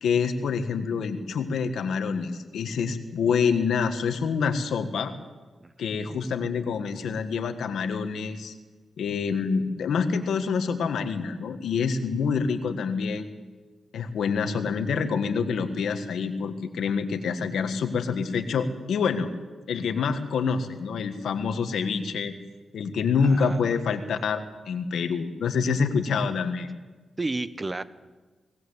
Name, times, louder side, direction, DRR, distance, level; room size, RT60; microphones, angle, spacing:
voice 1, 0.0-5.1 5.8-8.5 9.0-13.3 13.9-19.3 19.7-22.3 22.7-26.7, left 5 dB, 85° left, 8 dB, 1.6 m, -27 dB
voice 2, 23.2-23.8 27.2-27.8, right 2 dB, 25° right, 13 dB, 1.1 m, -32 dB
19.0 x 18.5 x 8.1 m, 1.3 s
cardioid pair, 70°, 0 cm